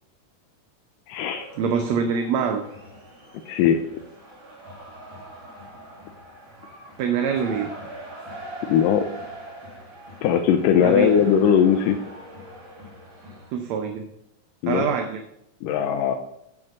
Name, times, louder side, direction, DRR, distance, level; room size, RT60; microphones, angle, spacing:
voice 1, 1.1-1.5 3.5-3.8 8.7-9.1 10.2-12.0 14.6-15.0 15.6-16.2, left 8 dB, 90° left, 5 dB, 2.3 m, -19 dB
sound 1, 1.3-13.5, right 1 dB, 40° right, 3.2 m, -42 dB
voice 2, 1.6-2.6 7.0-7.7 10.8-11.1 13.5-14.1 14.7-15.2, right 6 dB, 70° right, 6 dB, 1.8 m, -24 dB
9.0 x 6.7 x 5.3 m, 0.79 s
omnidirectional pair, 3.7 m